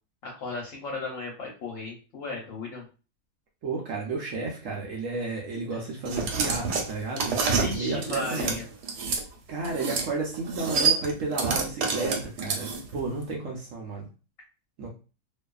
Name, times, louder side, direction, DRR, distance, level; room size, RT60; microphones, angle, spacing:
voice 1, 0.2-2.8 6.3-6.4 7.6-8.6, left 3 dB, 60° left, -2 dB, 1.0 m, -35 dB
voice 2, 3.6-7.4 7.7-8.6 9.5-14.1 14.8-14.9, right 3 dB, 65° right, -1 dB, 0.8 m, -32 dB
sound 1, 6.1-9.2 9.6-10.1 10.3-13.0, right 5 dB, 90° right, 1.2 m, -27 dB
2.6 x 2.3 x 2.3 m, 0.34 s
omnidirectional pair, 1.7 m